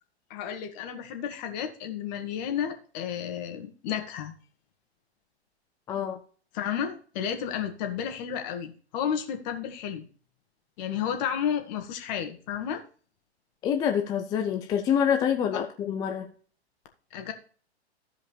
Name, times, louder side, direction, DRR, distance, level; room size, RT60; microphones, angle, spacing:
voice 1, 0.3-4.3 6.5-10.0 10.8-12.8 17.1-17.3, left 8 dB, 40° left, 5 dB, 1.8 m, -32 dB
voice 2, 5.9-6.2 13.6-16.3, left 8 dB, 10° left, 4 dB, 0.4 m, -26 dB
15.0 x 5.1 x 3.2 m, 0.41 s
figure-of-eight pair, 110°, 33 cm